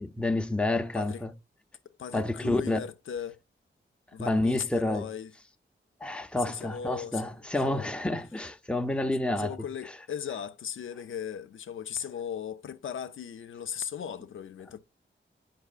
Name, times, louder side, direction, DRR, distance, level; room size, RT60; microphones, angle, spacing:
voice 1, 0.0-1.3 2.1-2.8 4.2-5.1 6.0-9.5, left 2 dB, 5° left, 0.6 m, -29 dB
voice 2, 2.0-3.4 4.1-5.3 6.4-7.4 7.6-7.9 9.4-14.8, left 8 dB, 85° left, 0.5 m, -37 dB
8.0 x 5.2 x 2.4 m
wide cardioid pair, 105°, 20 cm